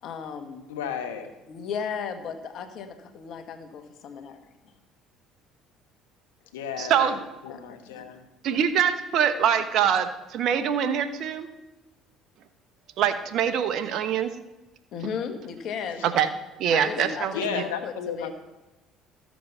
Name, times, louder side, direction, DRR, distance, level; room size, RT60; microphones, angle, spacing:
voice 1, 0.0-0.7 1.5-4.4 6.8-6.9 7.5-8.0 14.9-16.1 16.7-18.4, left 6 dB, 60° left, 7 dB, 1.5 m, -36 dB
voice 2, 0.7-1.3 6.5-8.2 17.0-18.4, left 7 dB, 90° left, 7 dB, 1.1 m, -33 dB
voice 3, 6.8-7.2 8.4-11.5 13.0-14.3 16.0-16.3 16.6-17.6, right 8 dB, 65° right, 10 dB, 1.0 m, -24 dB
13.0 x 7.6 x 5.5 m, 1.0 s
hypercardioid pair, 70°, 0 cm